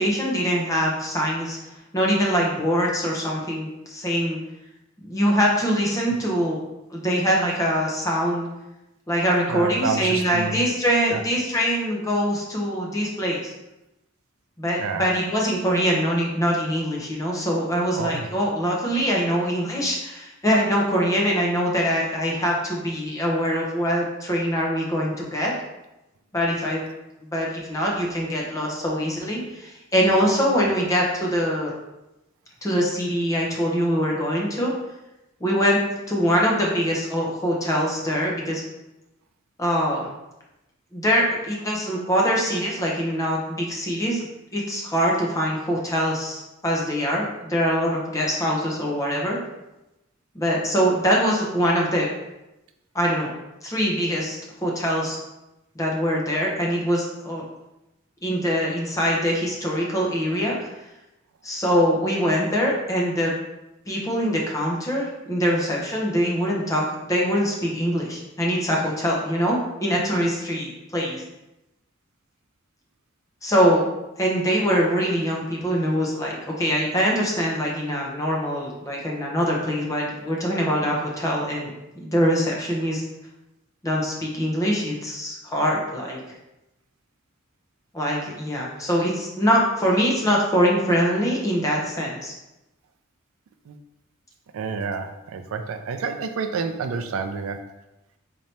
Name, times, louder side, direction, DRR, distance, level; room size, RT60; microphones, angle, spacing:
voice 1, 0.0-1.6 1.9-4.4 5.0-6.6 6.9-8.5 9.1-13.4 14.6-25.5 26.3-26.8 27.2-31.7 32.6-34.7 35.4-35.8 36.1-38.6 39.6-40.1 40.9-44.2 44.5-49.4 50.3-52.1 52.9-53.3 53.6-55.2 55.8-57.4 58.2-60.6 61.4-63.3 63.9-71.2 73.4-73.9 74.2-81.7 82.0-83.0 83.8-86.2 87.9-92.3, equal, 15° left, -2 dB, 0.7 m, -23 dB
voice 2, 9.5-10.6 11.1-11.2 14.8-15.0 17.9-18.3 93.7-93.8 94.5-97.6, right 5 dB, 75° right, 7 dB, 0.4 m, -29 dB
4.2 x 2.8 x 3.3 m, 0.96 s
head